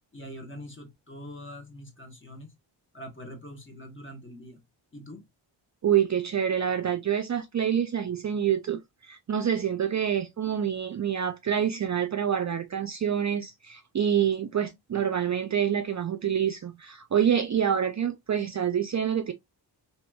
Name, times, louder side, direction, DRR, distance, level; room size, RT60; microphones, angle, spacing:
voice 1, 0.1-2.5 2.9-4.6 4.9-5.2, equal, 25° left, 1.2 m, -43 dB
voice 2, 5.8-19.3, right 9 dB, 40° right, 0.4 m, -27 dB
2.9 x 2.9 x 2.3 m
cardioid pair, 70°, 46 cm